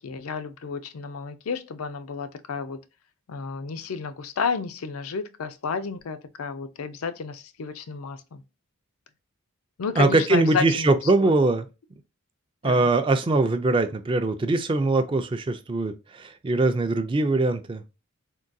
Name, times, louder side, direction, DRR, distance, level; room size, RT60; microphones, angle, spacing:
voice 1, 0.0-2.8 3.3-8.4 9.8-11.4 12.6-12.9, left 5 dB, 85° left, 0.5 m, -31 dB
voice 2, 10.0-11.7 12.6-17.8, right 2 dB, 25° right, 0.3 m, -22 dB
3.7 x 2.2 x 2.5 m
head